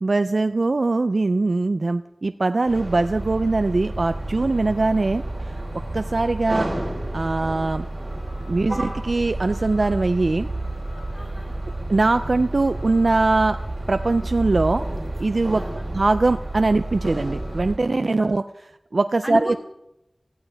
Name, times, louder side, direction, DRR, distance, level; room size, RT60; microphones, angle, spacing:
voice 1, 0.0-5.6 5.9-6.7 7.1-7.8 8.5-10.5 11.9-13.6 13.9-14.8 15.2-15.6 15.9-18.4 18.9-19.6, right 3 dB, 80° right, 10 dB, 0.4 m, -21 dB
sound 1, 2.7-17.8, right 1 dB, 50° right, 3.6 m, -30 dB
voice 2, 11.1-11.6 15.6-15.9 18.2-18.3 19.2-19.6, equal, 10° left, 2 dB, 3.2 m, -33 dB
19.0 x 15.0 x 3.4 m, 0.89 s
wide cardioid pair, 45°, 0 cm